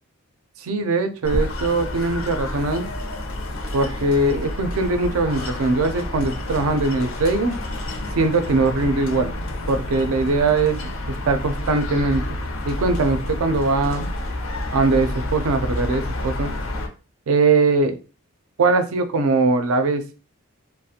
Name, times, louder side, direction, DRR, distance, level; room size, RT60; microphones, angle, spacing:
voice 1, 0.6-2.8 3.7-7.6 8.2-9.3 9.7-10.8 11.3-12.2 12.7-14.1 14.7-16.5 17.3-18.0 18.6-20.0, right 3 dB, 75° right, 9 dB, 0.4 m, -21 dB
sound 1, 1.2-16.9, left 1 dB, 70° left, 0.5 m, -29 dB
2.4 x 2.0 x 2.7 m, 0.34 s
head